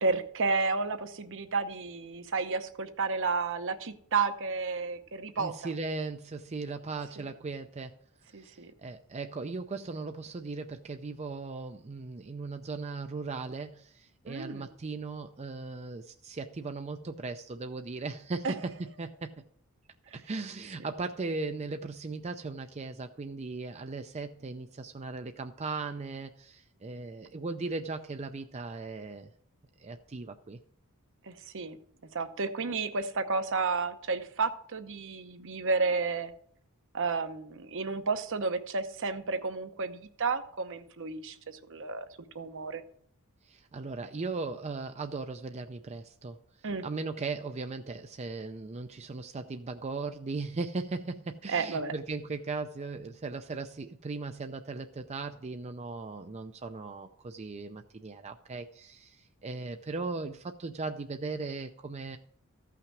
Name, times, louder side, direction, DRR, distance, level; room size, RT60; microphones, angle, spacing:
voice 1, 0.0-5.5 8.3-8.7 14.3-14.7 18.4-18.6 31.2-31.8 32.1-36.3 36.9-42.1 42.3-42.8 46.6-46.8 51.5-51.9, right 4 dB, 60° right, 9 dB, 0.9 m, -31 dB
voice 2, 5.4-8.0 8.3-19.3 20.1-29.3 29.8-30.6 43.4-62.2, right 3 dB, 30° right, 7 dB, 0.5 m, -38 dB
14.5 x 5.8 x 6.1 m, 0.64 s
head